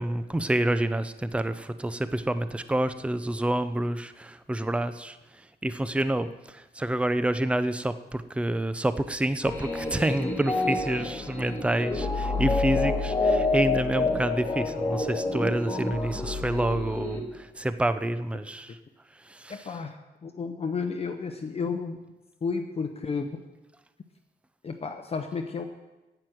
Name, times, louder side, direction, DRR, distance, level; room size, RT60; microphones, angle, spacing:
voice 1, 0.0-5.2 5.6-18.8 19.2-19.6, right 1 dB, 5° right, 12 dB, 0.5 m, -28 dB
sound 1, 9.4-17.2, left 3 dB, 15° left, 2.1 m, -28 dB
voice 2, 19.5-22.0 22.4-23.3 24.6-25.6, left 5 dB, 35° left, 5 dB, 0.7 m, -32 dB
10.5 x 7.9 x 9.1 m, 1.1 s
wide cardioid pair, 175°, 18 cm